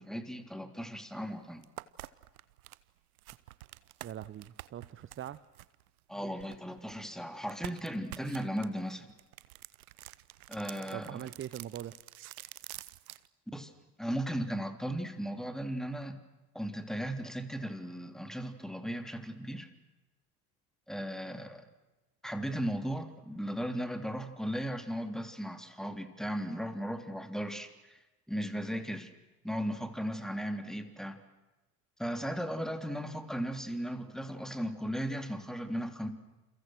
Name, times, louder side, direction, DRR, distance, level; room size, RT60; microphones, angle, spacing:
voice 1, 0.0-1.6 6.1-9.1 10.5-11.2 13.5-13.7 14.0-16.2 16.5-19.7 20.9-21.7 22.2-28.0 28.3-29.1 29.4-31.2 32.0-36.1, equal, ahead, 7 dB, 3.4 m, -36 dB
sound 1, 1.1-1.2 1.6-7.0 7.5-13.3, right 15 dB, 70° right, 1.0 m, -48 dB
voice 2, 4.0-5.4 10.9-11.9, right 11 dB, 25° right, 16 dB, 0.9 m, -42 dB
30.0 x 29.0 x 6.4 m, 1.1 s
figure-of-eight pair, 60°, 45 cm